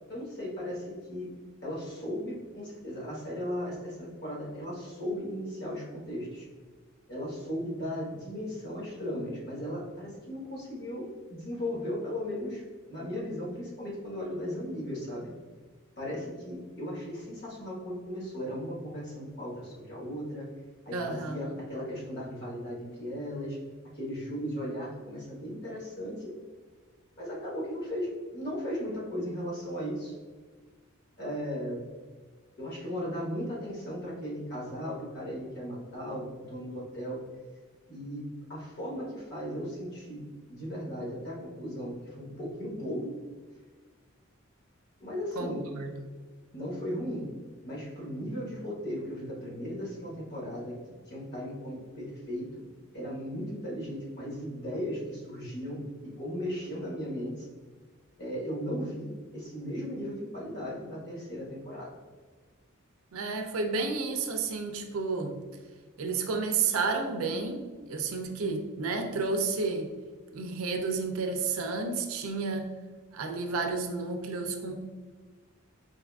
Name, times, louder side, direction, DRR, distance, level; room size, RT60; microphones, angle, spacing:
voice 1, 0.1-1.3 1.6-6.5 7.1-12.6 12.9-15.3 16.0-20.4 20.8-23.6 23.9-26.3 27.2-30.1 31.2-31.8 32.6-37.2 37.9-40.2 40.5-43.2 45.0-45.6 46.5-47.3 47.6-50.7 51.1-52.7 52.9-57.5 58.2-62.0, equal, 50° left, -5 dB, 1.2 m, -36 dB
voice 2, 20.9-21.6 45.4-45.9 63.1-65.4 66.0-69.9 70.3-72.7 73.1-74.8, right 4 dB, 85° right, 5 dB, 0.4 m, -31 dB
4.6 x 2.4 x 2.3 m, 1.5 s
head